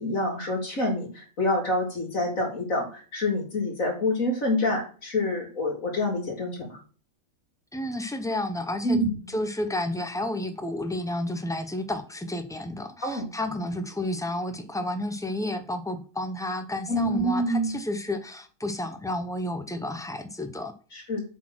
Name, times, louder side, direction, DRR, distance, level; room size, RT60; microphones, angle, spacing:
voice 1, 0.0-6.8 8.8-9.2 13.0-13.3 16.9-17.8 20.9-21.3, left 1 dB, 70° left, -2 dB, 3.7 m, -27 dB
voice 2, 7.7-20.7, left 1 dB, 5° left, 8 dB, 0.4 m, -31 dB
8.1 x 4.2 x 6.1 m, 0.39 s
omnidirectional pair, 1.5 m